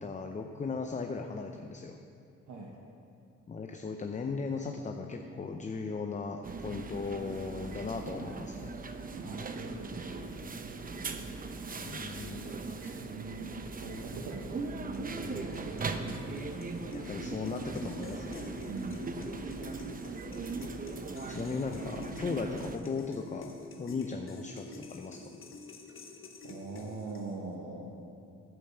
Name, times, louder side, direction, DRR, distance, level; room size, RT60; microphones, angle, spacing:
voice 1, 0.0-2.0 3.5-8.7 11.8-12.9 16.9-18.4 21.3-23.5 23.8-25.2, left 4 dB, 25° left, 4 dB, 0.6 m, -37 dB
sound 1, 6.4-22.8, right 3 dB, 30° right, 0.7 m, -39 dB
voice 2, 9.1-10.4 13.0-16.5 18.6-19.0 26.4-27.9, right 3 dB, 70° right, -3 dB, 1.4 m, -42 dB
sound 2, 14.9-27.6, left 3 dB, 45° left, 1.3 m, -49 dB
12.5 x 5.3 x 6.9 m, 2.5 s
cardioid pair, 90°, 30 cm